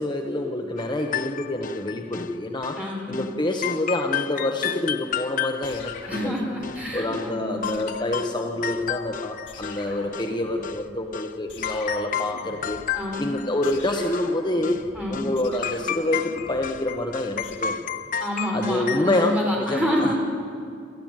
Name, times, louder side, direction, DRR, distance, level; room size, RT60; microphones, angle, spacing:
voice 1, 0.0-6.5 6.9-12.8 13.2-14.8 15.1-18.0 18.5-20.2, left 1 dB, 25° left, 3 dB, 1.1 m, -27 dB
sound 1, 0.8-2.3 2.6-2.8 3.1-3.3 3.6-7.3 7.6-9.9 10.1-10.8 11.1-11.3 11.6-13.9 14.1-14.3 14.6-14.8 15.1-15.3 15.6-19.4, left 8 dB, 45° left, 0.7 m, -32 dB
voice 2, 2.8-3.2 6.1-7.8 12.9-13.4 14.9-15.3 18.2-20.2, equal, 5° right, -3 dB, 4.5 m, -28 dB
sound 2, 5.6-7.1 7.6-9.2 9.5-11.1 11.5-17.6, left 2 dB, 65° left, 2.7 m, -43 dB
27.0 x 14.0 x 9.1 m, 2.5 s
head